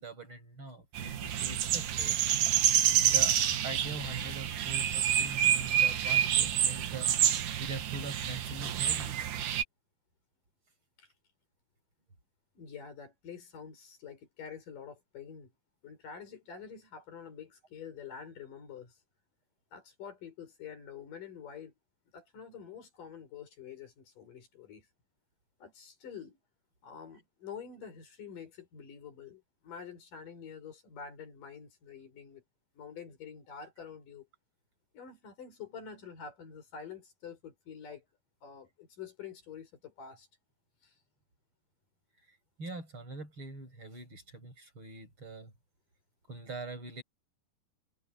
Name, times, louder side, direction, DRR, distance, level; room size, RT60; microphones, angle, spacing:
voice 1, 0.0-2.2 3.0-9.2 42.6-45.5 46.3-47.0, right 3 dB, 40° right, 7.2 m, -43 dB
sound 1, 0.9-9.6, right 10 dB, 80° right, 3.1 m, -28 dB
voice 2, 12.6-15.5 15.8-18.9 19.7-21.7 22.1-24.9 25.6-26.4 26.8-32.4 32.7-34.3 34.9-38.0 38.4-40.3 40.8-40.9, left 7 dB, 85° left, 6.6 m, -47 dB
omnidirectional pair, 3.7 m